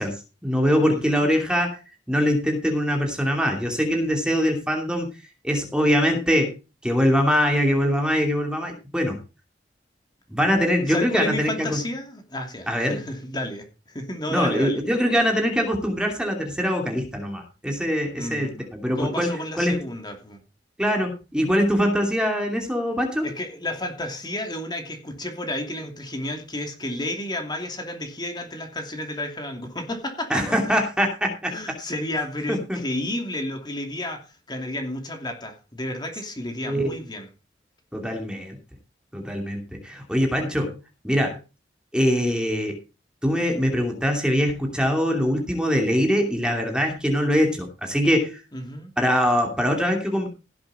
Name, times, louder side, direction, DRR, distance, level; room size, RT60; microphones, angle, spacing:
voice 1, 0.0-1.8 2.1-5.1 5.4-9.2 10.3-11.8 12.7-13.0 14.3-19.8 20.8-23.3 30.3-31.5 32.5-32.8 36.6-36.9 37.9-38.6 39.1-41.4 41.9-42.8 43.2-48.4 49.0-50.3, equal, 5° right, 2.7 m, -23 dB
voice 2, 0.8-1.3 10.9-14.8 18.1-18.7 19.0-20.4 23.2-30.4 31.5-34.2 34.5-37.3 48.5-48.9, left 1 dB, 25° left, 2.8 m, -31 dB
17.0 x 7.8 x 4.2 m
head